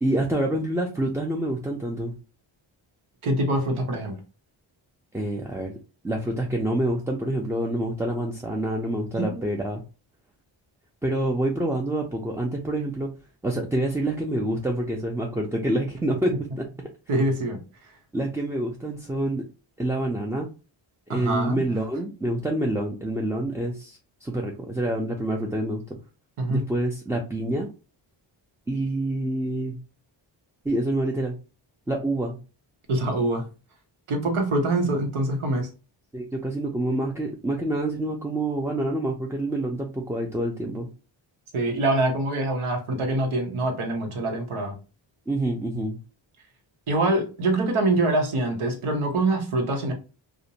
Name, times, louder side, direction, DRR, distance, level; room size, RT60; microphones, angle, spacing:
voice 1, 0.0-2.1 5.1-5.7 6.0-9.8 11.0-13.1 13.4-16.7 18.1-19.5 19.8-20.5 21.1-25.8 26.5-27.7 28.7-29.8 30.6-31.3 31.9-32.4 36.1-40.9 45.3-46.0, right 1 dB, 5° right, 0 dB, 0.3 m, -27 dB
voice 2, 3.2-4.1 9.1-9.4 17.1-17.6 21.1-21.6 26.4-26.6 32.9-33.5 34.1-35.7 41.5-44.7 46.9-49.9, right 2 dB, 85° right, 4 dB, 0.9 m, -24 dB
2.5 x 2.1 x 2.8 m, 0.32 s
cardioid pair, 70°, 48 cm